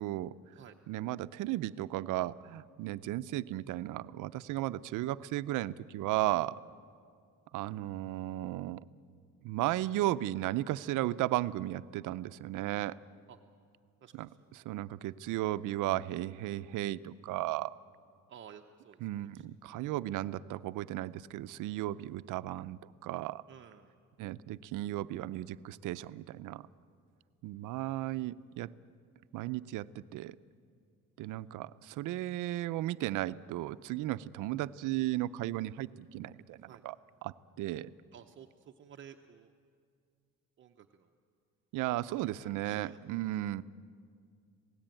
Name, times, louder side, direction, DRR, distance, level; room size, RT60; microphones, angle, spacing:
voice 1, 0.0-0.3 0.9-6.6 7.5-8.8 9.4-13.0 14.2-14.3 14.6-17.7 19.0-23.4 24.2-26.7 27.4-28.7 29.3-30.4 31.2-36.9 37.2-37.9 41.7-43.6, right 15 dB, 75° right, 14 dB, 0.7 m, -35 dB
voice 2, 14.0-14.5 18.3-19.5 23.5-23.9 36.6-36.9 38.1-39.5 40.6-41.1 42.1-43.0 43.3-43.5, right 8 dB, 40° right, 4 dB, 0.8 m, -54 dB
27.0 x 17.5 x 9.0 m, 2.3 s
cardioid pair, 155°, 31 cm